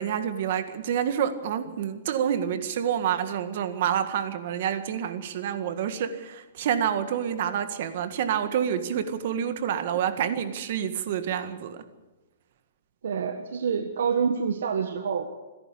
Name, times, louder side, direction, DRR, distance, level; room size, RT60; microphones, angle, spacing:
voice 1, 0.0-11.8, right 9 dB, 50° right, 9 dB, 1.9 m, -28 dB
voice 2, 13.0-15.3, right 6 dB, 80° right, 6 dB, 1.6 m, -27 dB
27.5 x 11.0 x 8.6 m, 1.2 s
hypercardioid pair, 165°, 0 cm